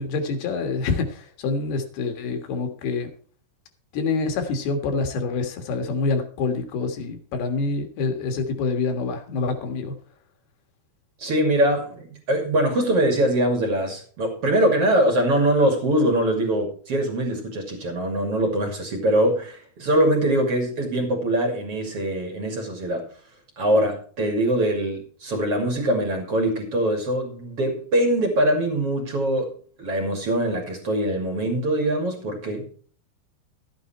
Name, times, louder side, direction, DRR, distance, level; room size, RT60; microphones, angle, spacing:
voice 1, 0.0-3.1 3.9-9.9, left 4 dB, 80° left, 6 dB, 3.6 m, -26 dB
voice 2, 11.2-23.0 23.6-29.5 29.8-32.7, right 1 dB, 40° right, 2 dB, 3.1 m, -23 dB
13.0 x 9.1 x 4.4 m, 0.43 s
omnidirectional pair, 4.5 m